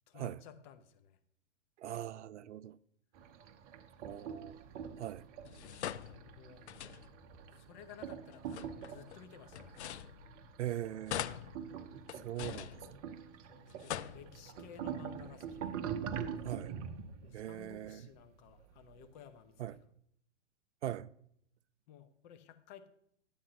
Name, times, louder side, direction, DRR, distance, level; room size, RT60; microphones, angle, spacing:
voice 1, 0.1-1.2 4.0-4.4 6.3-6.8 7.5-9.9 13.5-15.8 17.2-19.9 21.9-22.9, left 9 dB, 40° left, 0.9 m, -55 dB
voice 2, 1.8-2.8 4.0-4.6 5.0-5.2 10.6-11.3 12.2-13.1 16.4-16.7 17.3-18.1 19.6-19.7 20.8-21.1, right 12 dB, 75° right, 0.5 m, -41 dB
sound 1, 3.1-19.3, right 8 dB, 35° right, 0.7 m, -45 dB
sound 2, 5.4-7.3 8.3-10.7 11.1-13.3 13.7-14.7, left 11 dB, 70° left, 0.5 m, -44 dB
10.0 x 8.7 x 2.9 m
figure-of-eight pair, 110°, 36 cm